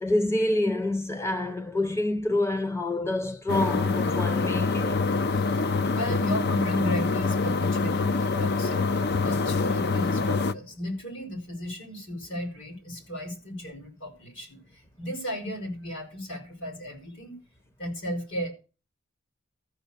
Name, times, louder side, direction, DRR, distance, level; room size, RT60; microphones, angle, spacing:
voice 1, 0.0-5.1, left 1 dB, 15° left, 0.7 m, -27 dB
sound 1, 3.5-10.5, left 4 dB, 55° left, 0.6 m, -25 dB
voice 2, 5.3-5.6 5.9-8.8 9.2-17.3 17.8-18.5, equal, 70° left, 4.9 m, -35 dB
13.5 x 6.3 x 6.8 m
head